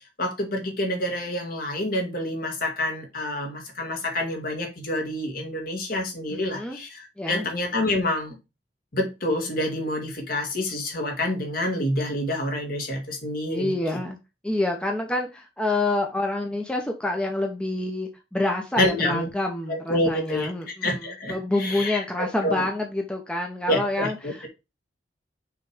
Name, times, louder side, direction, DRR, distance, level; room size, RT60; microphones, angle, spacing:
voice 1, 0.2-8.4 8.9-13.7 18.8-19.3 19.7-20.5 20.8-22.7 23.7-24.5, left 1 dB, 55° left, 1.8 m, -27 dB
voice 2, 6.3-6.8 7.2-7.5 13.5-14.2 14.4-21.0 21.3-24.5, left 2 dB, 5° left, 0.8 m, -27 dB
6.0 x 3.3 x 4.9 m
head